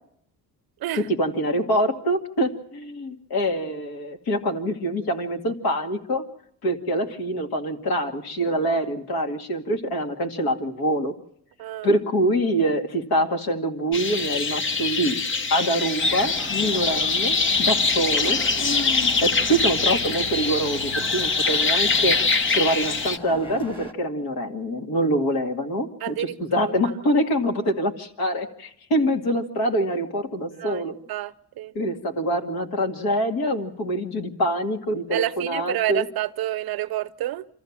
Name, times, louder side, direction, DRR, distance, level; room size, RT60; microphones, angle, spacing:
voice 1, 0.9-6.2 6.6-11.1 11.8-15.2 15.5-22.2 22.5-31.0 31.7-36.1, equal, 70° left, 2.4 m, -25 dB
voice 2, 11.6-12.0 26.0-26.7 30.5-30.8 31.1-31.8 35.1-37.5, right 14 dB, 65° right, 0.8 m, -29 dB
sound 1, 13.9-23.2, left 4 dB, 30° left, 0.9 m, -23 dB
sound 2, 16.0-23.9, left 1 dB, 15° left, 1.6 m, -39 dB
26.5 x 14.5 x 7.3 m
cardioid pair, 125°, 39 cm